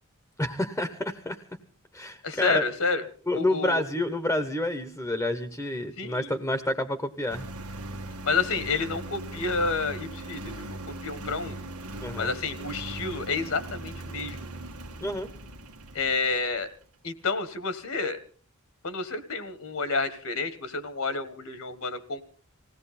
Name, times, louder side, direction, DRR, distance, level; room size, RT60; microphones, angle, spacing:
voice 1, 0.4-1.4 1.9-2.6 3.3-7.5 12.0-12.3 15.0-15.3, left 1 dB, 10° left, 10 dB, 1.0 m, -29 dB
voice 2, 2.2-3.0 3.3-3.8 6.0-6.3 8.2-11.6 12.2-14.4 15.9-16.7 17.0-18.2 18.8-22.2, left 4 dB, 70° left, 13 dB, 1.5 m, -29 dB
Engine, 7.3-16.7, right 1 dB, 85° right, 1.6 m, -39 dB
20.0 x 17.0 x 4.3 m, 0.40 s
head